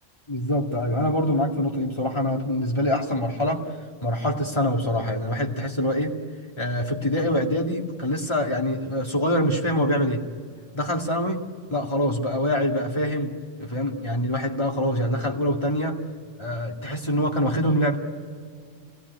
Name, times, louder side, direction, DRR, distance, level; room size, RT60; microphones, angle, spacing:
voice 1, 0.3-3.7 4.0-6.2 6.6-10.2 10.7-11.4 11.7-13.3 13.6-16.0 16.4-18.0, left 1 dB, 20° left, 0 dB, 2.2 m, -25 dB
27.0 x 18.5 x 9.6 m, 2.1 s
omnidirectional pair, 1.3 m